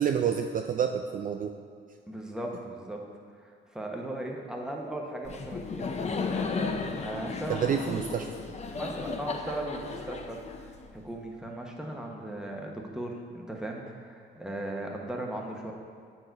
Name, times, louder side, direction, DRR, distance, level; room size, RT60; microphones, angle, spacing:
voice 1, 0.0-1.5 7.5-8.3, right 8 dB, 45° right, 5 dB, 0.4 m, -28 dB
voice 2, 2.1-3.0 3.4-5.9 7.0-8.0 8.7-15.7, right 1 dB, 5° right, 0 dB, 1.0 m, -37 dB
Laughter, 5.3-11.1, left 4 dB, 35° left, 0.6 m, -34 dB
7.6 x 4.5 x 4.7 m, 2.1 s
cardioid pair, 90°, 20 cm